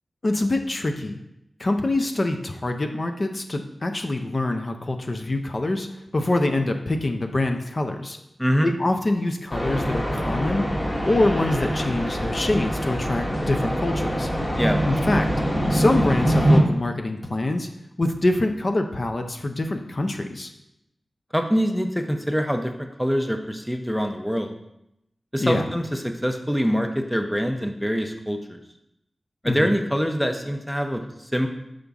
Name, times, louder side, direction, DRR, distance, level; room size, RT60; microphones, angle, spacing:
voice 1, 0.2-1.2 1.6-5.9 6.1-8.2 8.6-10.7 11.1-14.3 14.9-15.3 15.7-17.7 18.0-20.5 25.4-25.7 29.4-29.7, left 2 dB, 45° left, 5 dB, 0.6 m, -25 dB
voice 2, 8.4-8.7 14.6-14.8 21.3-24.5 25.3-28.6 29.4-31.5, equal, ahead, 5 dB, 0.5 m, -24 dB
sound 1, 9.5-16.6, equal, 25° left, 1.3 m, -24 dB
5.5 x 5.0 x 3.5 m, 0.82 s
wide cardioid pair, 65°, 0 cm